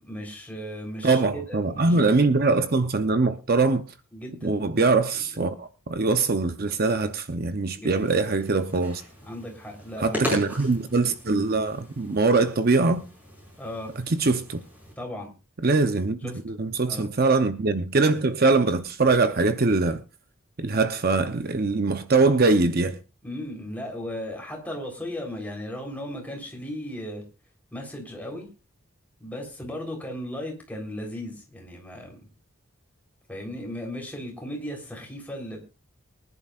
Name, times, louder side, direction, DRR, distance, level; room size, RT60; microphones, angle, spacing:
voice 1, 0.0-2.0 4.1-4.6 5.4-5.5 7.8-8.0 9.2-10.5 13.6-13.9 15.0-15.3 16.2-16.6 16.9-17.1 23.2-27.2 27.7-28.5 29.2-32.3 33.3-35.6, left 1 dB, 5° left, 3.7 m, -36 dB
voice 2, 1.0-3.8 4.4-9.0 10.0-13.1 14.1-14.6 15.6-20.0 20.6-23.0, right 3 dB, 45° right, 0.7 m, -22 dB
sound 1, 7.9-14.9, equal, 10° right, 5.5 m, -38 dB
24.0 x 11.0 x 2.4 m
head